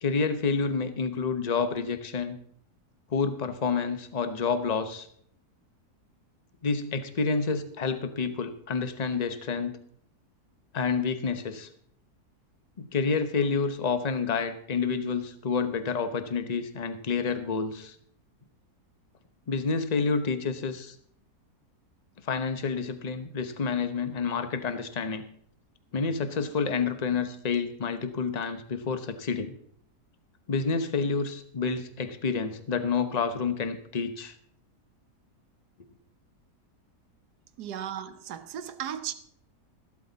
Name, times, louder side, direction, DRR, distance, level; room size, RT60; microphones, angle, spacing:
voice 1, 0.0-2.4 3.1-5.1 6.6-9.8 10.7-11.7 12.8-17.9 19.5-20.9 22.2-25.3 25.9-29.5 30.5-34.3, left 5 dB, 30° left, 0.9 m, -29 dB
voice 2, 37.6-39.1, right 9 dB, 85° right, 1.4 m, -36 dB
14.0 x 12.0 x 4.0 m
omnidirectional pair, 1.7 m